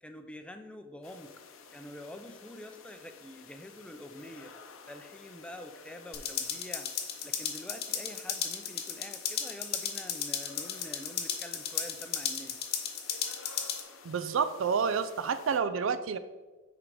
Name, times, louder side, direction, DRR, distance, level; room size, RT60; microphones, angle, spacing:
voice 1, 0.0-1.3 1.7-4.5 4.9-6.9 7.2-12.6, left 1 dB, 5° left, 7 dB, 0.4 m, -46 dB
sound 1, 1.0-15.6, left 5 dB, 80° left, 0.7 m, -53 dB
sound 2, 6.1-13.8, left 8 dB, 50° left, 0.8 m, -35 dB
voice 2, 14.0-16.2, right 6 dB, 70° right, 13 dB, 0.4 m, -29 dB
6.1 x 4.6 x 4.8 m, 1.2 s
head